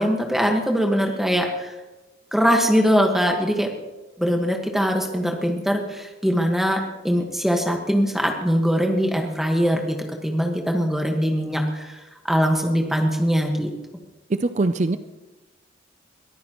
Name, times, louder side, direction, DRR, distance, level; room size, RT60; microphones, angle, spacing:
voice 1, 0.0-1.7 2.3-3.7 4.2-10.0 10.2-12.0 12.2-13.7, equal, ahead, 2 dB, 1.5 m, -22 dB
voice 2, 14.3-15.0, right 2 dB, 35° right, 11 dB, 0.4 m, -22 dB
22.5 x 14.0 x 3.0 m, 1.1 s
head